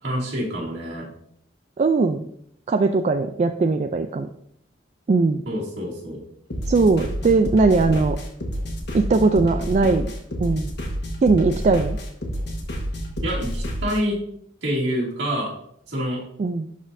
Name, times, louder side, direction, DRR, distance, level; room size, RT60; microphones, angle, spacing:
voice 1, 0.0-1.1 5.5-6.2 13.2-14.2 14.6-15.5 15.9-16.2, equal, 65° right, -5 dB, 2.4 m, -27 dB
voice 2, 1.8-2.3 2.7-4.3 5.1-5.4 6.7-8.2 8.9-10.1 10.4-10.7 11.2-12.0 16.4-16.7, right 3 dB, 40° right, 7 dB, 0.3 m, -19 dB
sound 1, 6.5-14.0, equal, 65° left, 1.4 m, -29 dB
11.0 x 4.0 x 2.6 m, 0.69 s
head